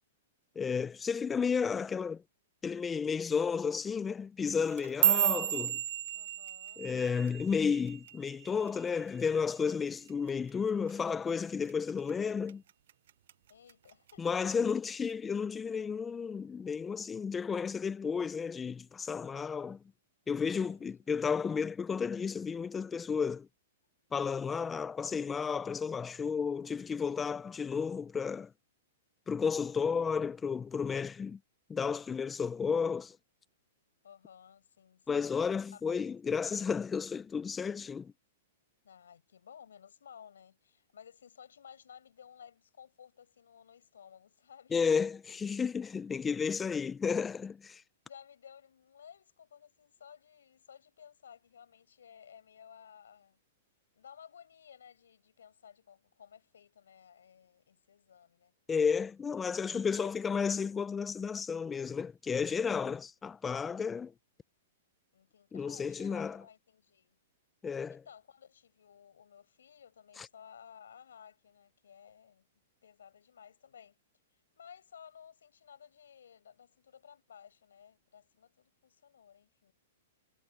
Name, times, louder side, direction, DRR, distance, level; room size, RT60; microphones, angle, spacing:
voice 1, 0.6-2.2 2.6-5.8 6.8-12.6 14.2-19.8 20.3-23.5 24.1-28.5 29.3-31.4 31.7-33.2 35.1-38.1 44.7-47.8 58.7-64.1 65.5-66.4 67.6-68.0 70.2-70.3, left 6 dB, 15° left, 0.4 m, -32 dB
sound 1, 4.6-9.0 9.3-9.7 10.1-10.5 10.9-11.1 11.7-12.1 12.5-13.3 13.7-14.1 14.9-15.0, right 12 dB, 65° right, 0.5 m, -32 dB
voice 2, 6.1-6.9 13.5-14.6 20.4-21.1 34.0-35.3 35.7-36.0 38.8-44.8 48.0-53.4 53.9-58.5 59.3-60.1 63.9-64.0 65.1-67.2 67.9-72.5 72.8-74.0 74.6-79.7, left 8 dB, 85° left, 7.5 m, -56 dB
hypercardioid pair, 140°, 0 cm